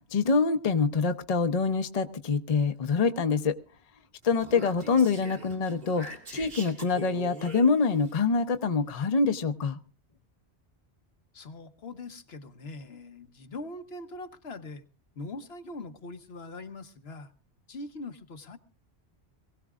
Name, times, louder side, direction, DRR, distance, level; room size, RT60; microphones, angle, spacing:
voice 1, 0.1-3.6 4.2-6.0 6.3-9.8, left 4 dB, 40° left, 0.8 m, -25 dB
Speech, 4.2-8.1, right 2 dB, 60° right, 2.4 m, -44 dB
voice 2, 11.3-14.8 15.2-17.3 17.7-18.6, left 2 dB, 70° left, 1.3 m, -42 dB
23.0 x 17.0 x 2.4 m
omnidirectional pair, 1.1 m